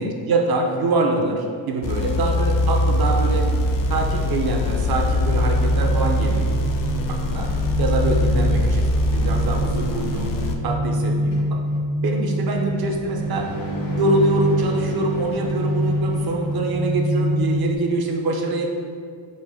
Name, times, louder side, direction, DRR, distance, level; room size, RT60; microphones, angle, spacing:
voice 1, 0.0-3.5 3.9-6.6 7.1-7.5 7.8-8.9 9.1-10.4 10.6-11.6 12.0-13.5 14.0-18.7, right 2 dB, 50° right, 2 dB, 0.6 m, -24 dB
sound 1, 1.8-10.6, left 1 dB, 45° left, 0.4 m, -22 dB
sound 2, 5.0-17.8, equal, 85° right, 1.4 m, -26 dB
sound 3, 11.3-16.9, equal, 70° left, 1.5 m, -34 dB
5.2 x 2.1 x 4.0 m, 2.2 s
cardioid pair, 115°, 49 cm